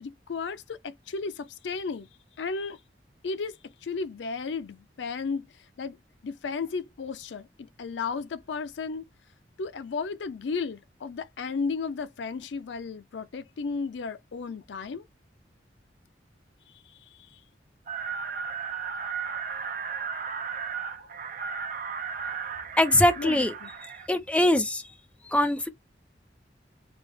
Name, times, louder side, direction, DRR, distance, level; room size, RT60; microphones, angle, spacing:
voice 1, 0.0-2.1 2.4-2.8 3.2-3.5 3.8-5.4 5.8-6.0 6.2-9.1 9.6-15.0 23.2-23.7, left 4 dB, 80° left, 0.4 m, -34 dB
sound 1, 17.9-24.1, right 6 dB, 45° right, 0.6 m, -35 dB
voice 2, 22.8-23.5 23.8-24.8 25.3-25.7, left 1 dB, 5° left, 0.4 m, -23 dB
5.0 x 2.0 x 3.4 m
head